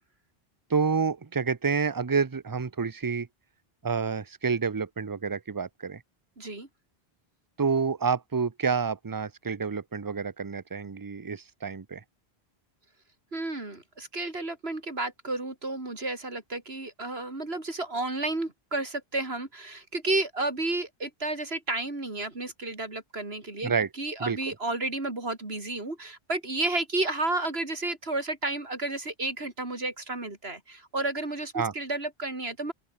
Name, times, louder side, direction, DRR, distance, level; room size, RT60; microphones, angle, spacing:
voice 1, 0.7-3.3 3.8-6.0 7.6-12.0 23.6-23.9 24.2-24.4 31.5-31.7, right 5 dB, 25° right, 0.6 m, -28 dB
voice 2, 6.4-6.7 13.3-32.7, right 2 dB, 70° right, 4.3 m, -32 dB
open air
omnidirectional pair, 1.1 m